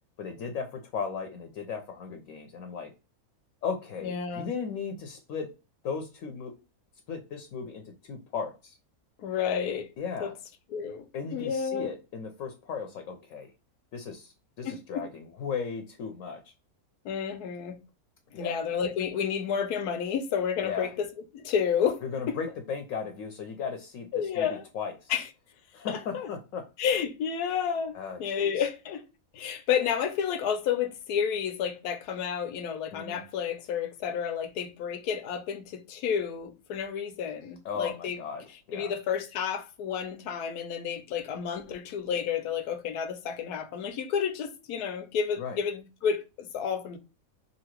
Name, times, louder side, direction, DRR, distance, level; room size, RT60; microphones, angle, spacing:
voice 1, 0.2-2.9 3.6-5.5 5.8-6.5 7.1-8.8 10.0-10.3 11.1-13.5 13.9-16.5 18.3-18.6 20.6-20.9 22.0-25.1 25.7-26.7 27.9-28.6 32.9-33.2 37.6-38.9 45.4-45.6, left 6 dB, 70° left, 1.0 m, -36 dB
voice 2, 4.0-4.5 9.2-9.9 10.2-10.3 10.7-11.1 11.3-11.9 14.6-15.1 17.0-17.8 18.4-21.1 21.3-22.4 24.1-24.7 25.1-25.3 25.9-26.3 26.8-29.0 29.3-38.2 38.7-47.0, left 7 dB, 90° left, 1.2 m, -30 dB
2.8 x 2.7 x 2.9 m
omnidirectional pair, 1.6 m